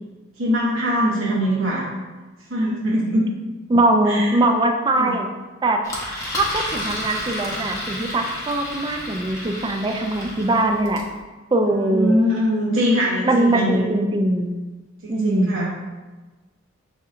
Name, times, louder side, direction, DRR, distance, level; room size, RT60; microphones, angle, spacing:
voice 1, 0.4-1.9 2.5-3.2 4.0-4.3 4.9-5.1 11.6-13.8 15.0-15.7, equal, 80° right, -6 dB, 0.9 m, -22 dB
voice 2, 3.7-5.3 5.6-5.8 6.4-11.0 11.5-12.2 13.2-14.6 15.1-15.7, right 1 dB, 25° right, 4 dB, 0.3 m, -21 dB
Engine, 5.8-11.1, left 1 dB, 15° left, 0.8 m, -31 dB
6.0 x 2.8 x 2.4 m, 1.2 s
head